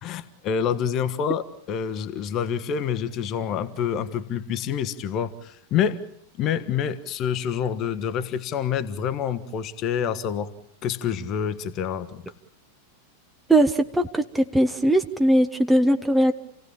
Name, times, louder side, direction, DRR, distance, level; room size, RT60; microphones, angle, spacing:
voice 1, 0.0-6.0 6.4-10.5 10.8-12.2, left 8 dB, 35° left, 12 dB, 1.3 m, -27 dB
voice 2, 13.5-16.3, right 1 dB, 5° right, 7 dB, 1.3 m, -20 dB
29.0 x 17.5 x 8.8 m, 0.69 s
figure-of-eight pair, 90°, 0 cm